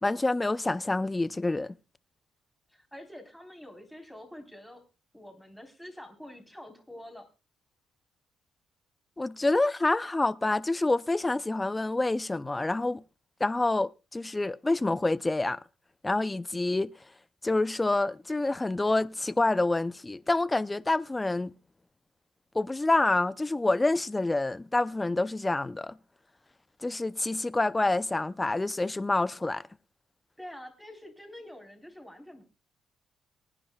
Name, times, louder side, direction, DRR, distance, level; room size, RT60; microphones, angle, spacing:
voice 1, 0.0-1.7 9.2-13.0 13.4-15.6 16.0-16.9 17.4-21.5 22.5-26.0 26.8-29.6, left 2 dB, 15° left, 0.5 m, -27 dB
voice 2, 2.7-4.8 5.1-7.3 30.4-32.4, left 1 dB, ahead, 3.9 m, -46 dB
24.0 x 9.9 x 2.3 m
cardioid pair, 90°, 0 cm